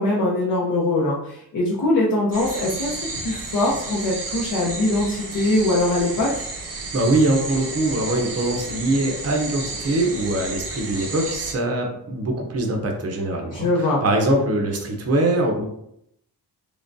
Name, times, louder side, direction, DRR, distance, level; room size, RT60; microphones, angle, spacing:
voice 1, 0.0-6.4 13.5-14.0, left 2 dB, 50° left, -3 dB, 0.7 m, -22 dB
sound 1, 2.3-11.5, right 3 dB, 80° right, 0.9 m, -32 dB
voice 2, 6.9-15.6, right 1 dB, 35° right, 3 dB, 0.6 m, -22 dB
3.6 x 3.2 x 2.6 m, 0.76 s
wide cardioid pair, 175°, 41 cm